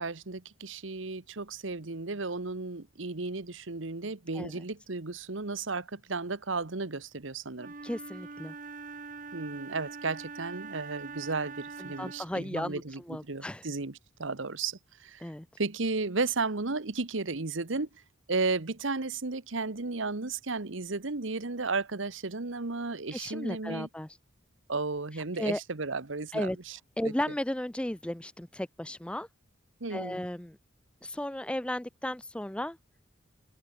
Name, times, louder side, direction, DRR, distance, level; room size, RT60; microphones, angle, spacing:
voice 1, 0.0-7.7 9.3-13.9 14.2-15.2 15.6-17.9 18.3-23.9 24.7-26.8 29.8-30.2, right 3 dB, 75° right, 1.3 m, -34 dB
Wind instrument woodwind instrument, 7.5-12.4, right 4 dB, 40° right, 1.0 m, -43 dB
voice 2, 7.8-8.5 11.9-13.7 15.2-15.5 23.1-24.1 25.1-25.6 26.3-26.6 27.0-29.3 29.9-30.6 31.0-32.8, left 1 dB, 5° left, 0.4 m, -35 dB
open air
head